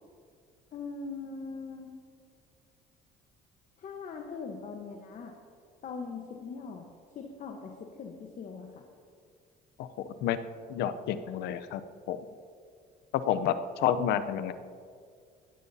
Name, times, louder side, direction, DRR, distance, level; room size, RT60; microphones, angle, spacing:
voice 1, 0.7-1.9 3.8-5.3 5.8-6.9 7.1-8.7, left 4 dB, 50° left, 3 dB, 1.2 m, -41 dB
voice 2, 10.7-11.8 12.1-12.2 13.3-14.5, left 9 dB, 80° left, 12 dB, 0.7 m, -29 dB
17.0 x 12.0 x 2.8 m, 2.2 s
cardioid pair, 110°, 17 cm